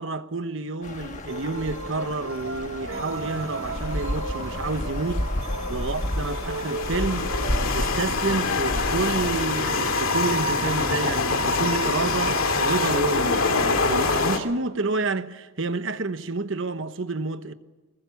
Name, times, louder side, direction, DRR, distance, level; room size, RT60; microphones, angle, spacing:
voice 1, 0.0-5.3 5.7-7.3 7.7-17.5, right 3 dB, 65° right, 1.1 m, -29 dB
sound 1, 0.8-9.7, left 1 dB, 35° left, 1.5 m, -32 dB
sound 2, 1.3-7.7, right 3 dB, 90° right, 1.4 m, -36 dB
sound 3, 2.9-14.4, left 3 dB, 90° left, 2.1 m, -26 dB
21.5 x 20.5 x 7.1 m
head